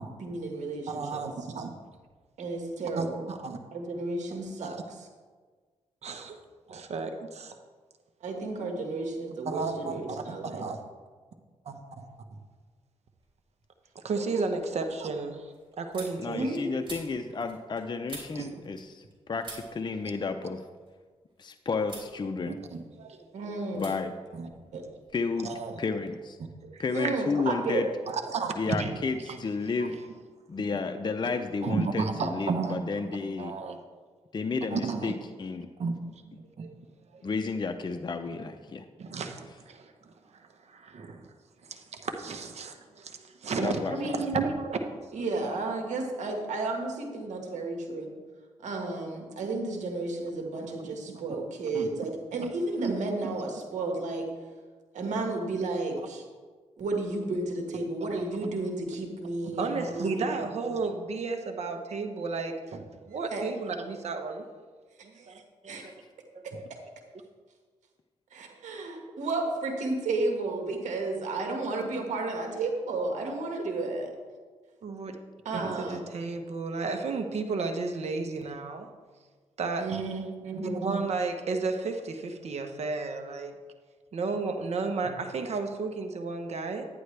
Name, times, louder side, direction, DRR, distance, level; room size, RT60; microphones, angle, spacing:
voice 1, 0.2-1.2 2.4-3.3 3.7-4.8 8.2-10.6 14.3-14.4 16.3-16.8 23.3-24.0 24.7-24.8 26.9-27.8 43.9-44.4 45.1-48.1 48.6-54.3 54.9-56.2 56.8-60.4 63.3-63.4 65.2-65.3 65.7-65.8 68.3-74.1 75.4-76.0 79.8-80.9, right 2 dB, 80° right, 2 dB, 1.7 m, -32 dB
voice 2, 0.9-1.7 3.0-3.6 4.6-4.8 6.0-6.4 6.7-7.6 9.5-10.8 11.7-12.1 13.9-16.6 18.3-18.5 22.4-23.6 24.3-24.8 25.4-25.8 26.6-26.8 28.1-28.9 29.3-29.4 29.8-29.9 31.6-33.1 33.4-33.8 34.7-35.1 35.8-36.0 36.3-36.7 37.1-37.2 39.0-41.3 41.6-43.8 44.0-45.5 50.8-51.3 51.7-51.9 52.8-52.9 59.6-64.5 65.3-65.9 74.8-75.2 75.5-78.9 79.6-80.0 80.6-83.5 84.1-86.8, right 4 dB, 60° right, 5 dB, 1.0 m, -33 dB
sound 1, 13.2-13.7 14.1-19.1 19.4-21.4 21.8-22.1 22.5-23.2 23.7-23.9 24.2-25.3, right 3 dB, 40° right, 3.4 m, -48 dB
voice 3, 16.2-20.6 21.4-22.6 23.7-24.1 25.1-25.5 25.8-26.4 26.8-27.9 28.6-30.0 30.5-33.5 34.3-35.7 37.2-38.9 43.6-44.0 65.7-65.9 75.9-76.0, left 4 dB, 35° left, 6 dB, 0.6 m, -32 dB
11.0 x 9.6 x 3.3 m, 1.5 s
cardioid pair, 60°, 12 cm